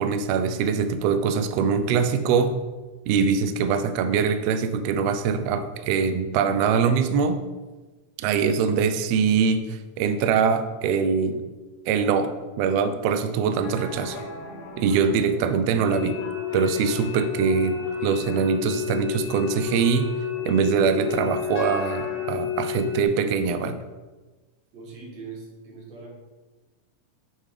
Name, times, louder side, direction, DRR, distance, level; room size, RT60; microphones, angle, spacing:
voice 1, 0.0-2.5 3.1-7.4 8.2-11.4 11.9-12.3 12.6-14.2 14.8-16.2 16.5-20.1 20.4-23.8, right 6 dB, 85° right, 9 dB, 1.4 m, -23 dB
sound 1, 13.6-22.3, left 1 dB, 85° left, 2.5 m, -40 dB
sound 2, 15.8-23.0, left 10 dB, 65° left, 1.6 m, -31 dB
voice 2, 24.7-26.1, right 4 dB, 70° right, -1 dB, 2.7 m, -41 dB
8.4 x 3.8 x 4.9 m, 1.2 s
omnidirectional pair, 3.4 m